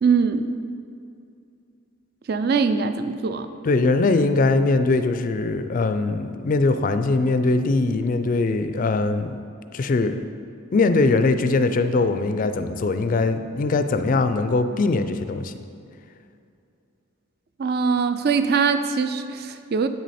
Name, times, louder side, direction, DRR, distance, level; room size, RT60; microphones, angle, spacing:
voice 1, 0.0-0.6 2.3-3.5 17.6-19.9, right 5 dB, 45° right, 10 dB, 0.4 m, -22 dB
voice 2, 3.6-9.4 9.7-10.3 10.7-15.5, left 3 dB, 40° left, 9 dB, 0.3 m, -21 dB
8.4 x 6.2 x 4.2 m, 2.5 s
head